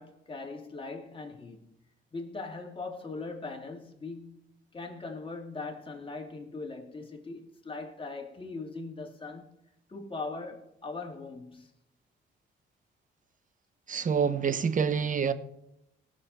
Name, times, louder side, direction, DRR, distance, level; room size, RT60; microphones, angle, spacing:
voice 1, 0.0-1.7 2.1-4.4 4.7-9.6 9.9-11.8, left 3 dB, 25° left, 2.3 m, -40 dB
voice 2, 13.9-15.3, right 6 dB, 40° right, 1.0 m, -27 dB
18.0 x 6.7 x 4.2 m
cardioid pair, 90°, 20 cm